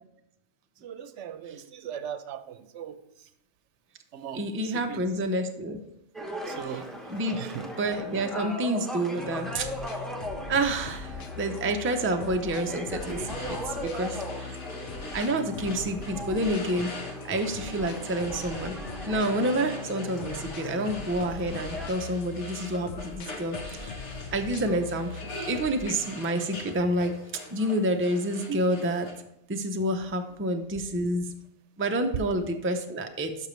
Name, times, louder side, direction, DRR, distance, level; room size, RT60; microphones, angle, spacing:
voice 1, 0.8-3.0 4.1-5.0 6.5-6.9 7.3-7.7 28.5-28.6 32.1-32.2, right 7 dB, 85° right, 11 dB, 0.9 m, -37 dB
voice 2, 4.3-5.8 6.7-6.8 7.1-7.4 7.8-9.7 10.5-14.5 15.1-16.9 17.3-18.7 19.1-24.0 24.3-27.2 27.5-29.1 29.5-31.2 31.8-33.5, right 1 dB, 20° right, 5 dB, 0.4 m, -28 dB
sound 1, 6.1-21.9, equal, ahead, 0.7 m, -39 dB
sound 2, 9.2-26.1, left 5 dB, 65° left, 0.9 m, -41 dB
sound 3, 13.0-29.1, left 2 dB, 80° left, 1.6 m, -43 dB
12.0 x 5.5 x 3.1 m, 0.83 s
omnidirectional pair, 1.2 m